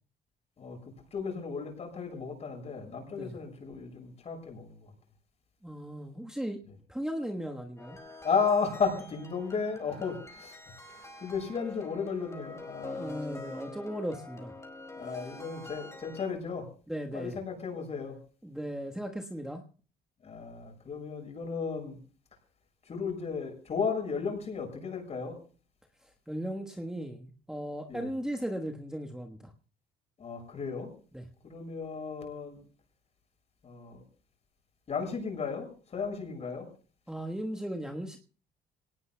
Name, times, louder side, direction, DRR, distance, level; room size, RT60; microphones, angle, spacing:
voice 1, 1.1-4.9 8.2-13.4 15.0-16.7 17.1-18.2 20.2-22.0 22.9-25.4 27.9-28.1 30.2-30.9 31.4-32.6 33.6-34.0 34.9-36.7, left 5 dB, 40° left, 3 dB, 7.1 m, -34 dB
voice 2, 5.6-6.6 6.9-8.0 12.8-14.5 16.9-17.4 18.4-19.6 26.0-29.5 31.1-31.3 37.1-38.2, equal, 5° right, 2 dB, 1.3 m, -37 dB
sound 1, 7.8-16.3, left 2 dB, 15° left, 4.4 m, -46 dB
26.0 x 18.5 x 2.2 m, 0.39 s
cardioid pair, 110°, 17 cm